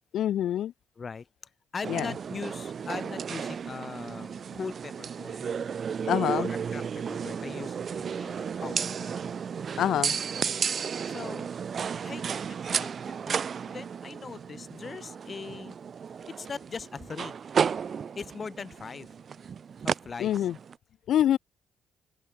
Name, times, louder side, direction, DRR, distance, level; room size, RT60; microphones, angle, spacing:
voice 1, 0.1-0.7 1.9-2.1 6.1-6.5 9.8-10.2 20.2-20.5 21.1-21.4, left 11 dB, 70° left, 1.5 m, -25 dB
voice 2, 1.0-1.3 1.7-5.5 6.3-9.4 11.1-11.5 12.0-15.8 16.3-17.3 18.2-19.1 19.8-20.5, left 5 dB, 35° left, 3.8 m, -41 dB
sound 1, 1.8-20.7, right 7 dB, 50° right, 3.5 m, -33 dB
open air
cardioid pair, 90°, 0 cm